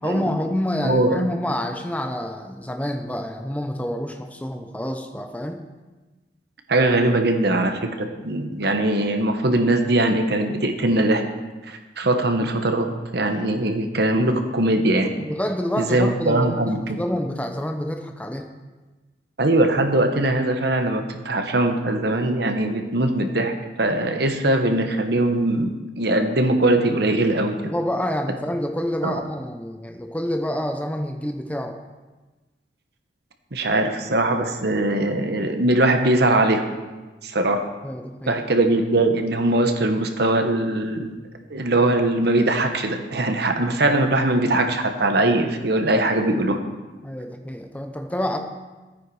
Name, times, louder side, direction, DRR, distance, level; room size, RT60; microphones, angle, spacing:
voice 1, 0.0-5.7 15.2-18.5 27.6-31.8 37.8-38.4 47.0-48.4, left 1 dB, 10° left, 5 dB, 0.7 m, -28 dB
voice 2, 0.8-1.3 6.7-11.2 11.7-12.9 13.1-15.1 15.8-17.0 19.4-23.5 23.8-27.6 29.0-29.2 33.5-36.6 37.2-37.6 38.3-41.1 41.5-46.6, right 1 dB, 60° right, 5 dB, 1.2 m, -21 dB
13.5 x 9.3 x 4.9 m, 1.2 s
head